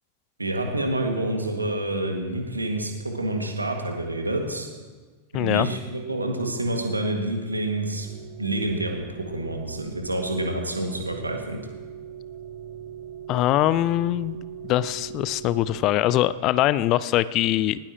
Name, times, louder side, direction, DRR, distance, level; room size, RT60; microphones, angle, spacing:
voice 1, 0.4-4.7 5.3-8.1 8.4-11.6, right 1 dB, 80° right, 2 dB, 2.2 m, -28 dB
voice 2, 5.3-5.7 13.3-14.4 14.7-17.8, left 14 dB, 40° left, 17 dB, 0.5 m, -22 dB
sound 1, 8.0-15.9, right 9 dB, 15° right, 3.6 m, -40 dB
19.0 x 17.5 x 3.1 m, 1.5 s
figure-of-eight pair, 90°, 0 cm